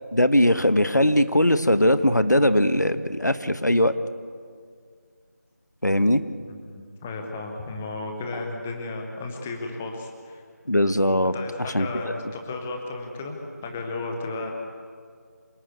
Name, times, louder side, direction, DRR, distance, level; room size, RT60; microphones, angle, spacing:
voice 1, 0.1-3.9 5.8-6.2 10.7-11.3 11.7-11.9, left 1 dB, 90° left, 11 dB, 1.6 m, -20 dB
voice 2, 6.5-10.4 11.3-13.4 13.6-14.5, left 3 dB, 5° left, 3 dB, 0.7 m, -34 dB
27.0 x 18.5 x 8.3 m, 2.1 s
figure-of-eight pair, 170°, 9 cm